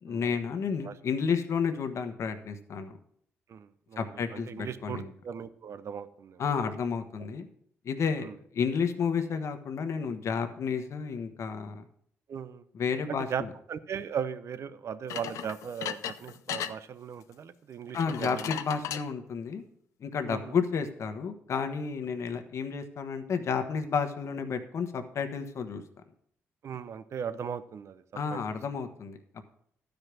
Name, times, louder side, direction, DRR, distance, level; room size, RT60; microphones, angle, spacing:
voice 1, 0.0-3.0 4.0-5.1 6.4-7.5 7.8-8.3 8.5-11.8 12.7-13.5 17.9-19.6 20.0-25.8 28.1-29.4, left 6 dB, 65° left, 7 dB, 1.2 m, -31 dB
voice 2, 3.5-4.0 4.3-6.4 8.2-8.3 12.3-12.6 13.1-13.4 13.7-18.5 20.3-20.6 26.6-28.0 28.3-28.4, right 7 dB, 60° right, 13 dB, 0.7 m, -38 dB
sound 1, 15.1-16.7 17.9-19.1, left 10 dB, 80° left, 0.5 m, -36 dB
12.0 x 5.2 x 6.1 m, 0.67 s
supercardioid pair, 65°, 5 cm